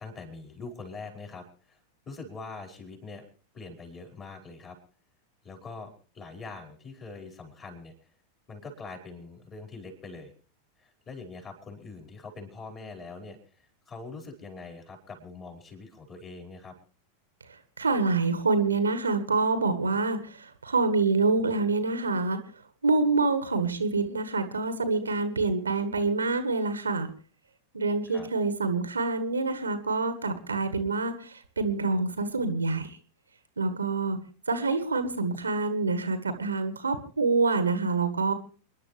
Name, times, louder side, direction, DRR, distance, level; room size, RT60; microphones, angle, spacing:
voice 1, 0.0-1.8 2.1-3.2 3.5-4.8 5.4-5.9 6.1-7.9 8.5-10.3 10.8-13.4 13.9-16.7 28.1-28.3, left 3 dB, 25° left, 3 dB, 5.3 m, -43 dB
voice 2, 17.8-22.4 22.8-27.1 27.7-31.1 31.6-32.9 33.6-34.2 34.5-38.3, right 3 dB, 75° right, 10 dB, 1.6 m, -26 dB
28.5 x 11.0 x 3.4 m, 0.39 s
figure-of-eight pair, 90°, 0 cm